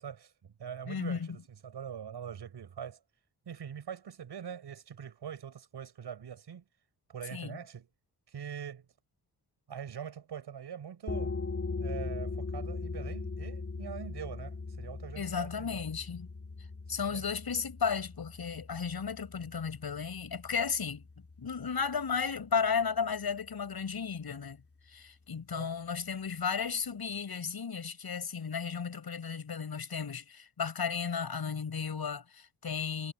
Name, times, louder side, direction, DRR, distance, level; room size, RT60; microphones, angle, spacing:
voice 1, 0.0-3.0 3.5-6.7 7.1-7.9 8.3-8.9 9.7-11.3 11.8-15.8 17.1-17.2 25.5-25.7, right 8 dB, 85° right, 5.8 m, -43 dB
voice 2, 0.9-1.4 7.3-7.6 15.2-16.3 16.9-21.0 21.4-24.6 24.9-33.1, left 6 dB, 65° left, 7.2 m, -34 dB
sound 1, 11.1-22.4, left 4 dB, 35° left, 3.1 m, -40 dB
cardioid pair, 85°, 40 cm